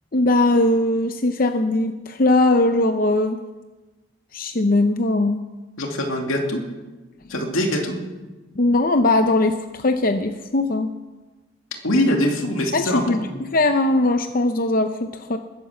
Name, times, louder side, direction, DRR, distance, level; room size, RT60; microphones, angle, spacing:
voice 1, 0.1-3.4 4.3-5.4 8.6-10.9 12.7-13.2 13.5-15.4, left 2 dB, 40° left, 7 dB, 0.7 m, -20 dB
voice 2, 5.8-6.6 7.3-8.0 11.8-13.2, left 1 dB, 80° left, 3 dB, 2.6 m, -22 dB
21.0 x 9.5 x 7.2 m, 1.2 s
head